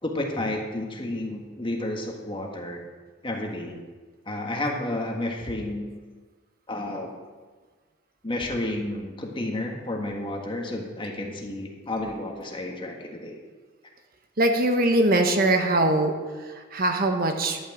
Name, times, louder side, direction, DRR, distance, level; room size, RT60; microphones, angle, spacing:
voice 1, 0.0-2.8 3.2-3.8 4.3-5.9 6.7-7.1 8.2-13.4, left 1 dB, 25° left, 1 dB, 1.6 m, -31 dB
voice 2, 14.4-16.1 16.7-17.6, right 1 dB, 50° right, 5 dB, 1.1 m, -21 dB
11.5 x 6.5 x 8.0 m, 1.4 s
head